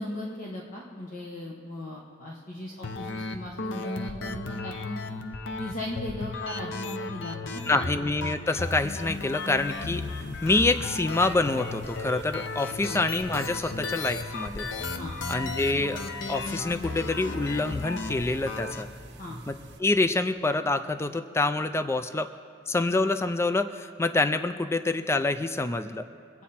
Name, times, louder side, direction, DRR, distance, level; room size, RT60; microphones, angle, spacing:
voice 1, 0.0-5.0 5.6-7.9 12.8-13.0 15.0-15.1 19.2-19.4, left 1 dB, 45° left, -3 dB, 1.3 m, -37 dB
sound 1, 2.8-18.8, left 3 dB, 65° left, 0.8 m, -35 dB
voice 2, 7.6-10.0 10.4-14.7 15.3-16.0 16.3-18.9 19.5-22.3 22.7-26.1, left 2 dB, 15° left, 10 dB, 0.3 m, -26 dB
sound 2, 8.6-19.8, right 1 dB, 60° right, 1.2 m, -46 dB
23.5 x 8.3 x 4.3 m, 2.6 s
head